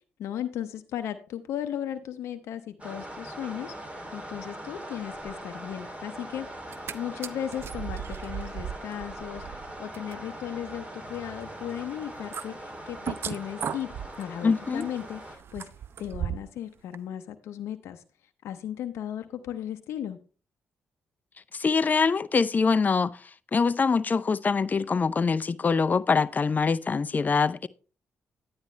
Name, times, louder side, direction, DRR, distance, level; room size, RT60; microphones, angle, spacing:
voice 1, 0.2-3.7 4.1-6.5 6.9-9.4 9.8-13.9 14.2-15.7 16.0-18.0 18.4-20.2, left 10 dB, 80° left, 0.7 m, -36 dB
sound 1, 2.8-15.4, right 1 dB, 30° right, 3.0 m, -41 dB
sound 2, 6.5-6.9 7.2-16.6 16.9-17.0, right 8 dB, 60° right, 0.6 m, -38 dB
voice 2, 14.4-14.8 21.5-27.7, left 5 dB, 40° left, 0.5 m, -24 dB
9.8 x 9.7 x 3.2 m
supercardioid pair, 50°, 5 cm